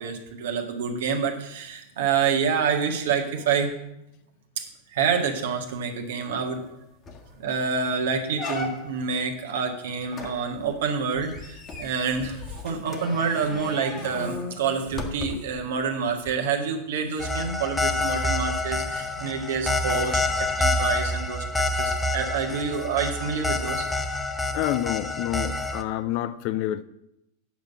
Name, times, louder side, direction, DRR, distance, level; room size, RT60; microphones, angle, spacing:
voice 1, 0.0-3.7 4.6-6.7 7.4-21.4 21.8-23.9, right 6 dB, 60° right, 1.7 m, -27 dB
sound 1, 6.6-6.7 7.1-7.4 7.8-7.9 8.4-9.1 10.1-15.6 16.2-16.3, left 2 dB, 25° left, 1.6 m, -37 dB
sound 2, 17.2-25.8, left 2 dB, 10° left, 0.9 m, -27 dB
voice 2, 24.5-26.8, left 13 dB, 45° left, 0.6 m, -28 dB
9.1 x 6.7 x 7.4 m
figure-of-eight pair, 90°, 0 cm